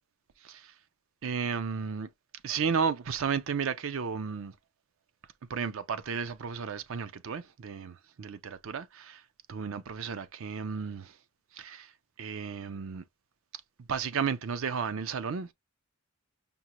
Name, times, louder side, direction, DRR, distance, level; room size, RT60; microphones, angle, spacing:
voice 1, 0.4-0.7 1.2-2.1 2.4-4.5 5.5-9.2 9.5-11.2 11.5-11.9 12.2-13.0 13.9-15.5, right 6 dB, 65° right, 0.5 m, -33 dB
5.3 x 2.2 x 2.9 m
head